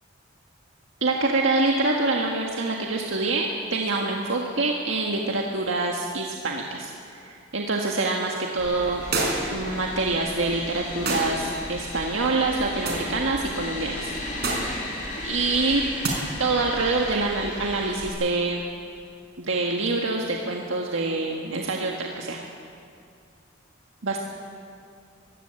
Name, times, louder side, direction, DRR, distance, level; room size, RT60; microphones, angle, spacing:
voice 1, 1.0-9.0 9.5-14.1 15.2-15.8 16.4-18.7 19.4-22.4 24.0-24.2, right 3 dB, 85° right, -1 dB, 1.7 m, -26 dB
sound 1, 8.6-18.1, left 1 dB, 45° left, 5.2 m, -35 dB
sound 2, 9.1-9.6 11.1-11.4 12.8-13.1 14.4-14.8 16.0-16.2, right 2 dB, 55° right, 4.7 m, -26 dB
22.0 x 16.5 x 7.9 m, 2.4 s
head